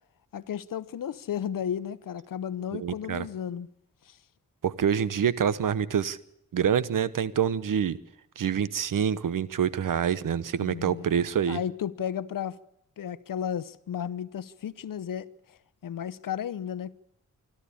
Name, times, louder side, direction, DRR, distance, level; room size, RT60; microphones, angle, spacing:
voice 1, 0.3-3.7 4.1-4.2 10.6-11.1 11.5-12.6 13.0-15.6 15.8-16.9, left 9 dB, 80° left, 0.8 m, -33 dB
voice 2, 2.7-3.3 4.6-6.2 6.5-8.0 8.4-11.6, right 8 dB, 75° right, 1.0 m, -26 dB
26.0 x 13.0 x 8.4 m
cardioid pair, 75°, 33 cm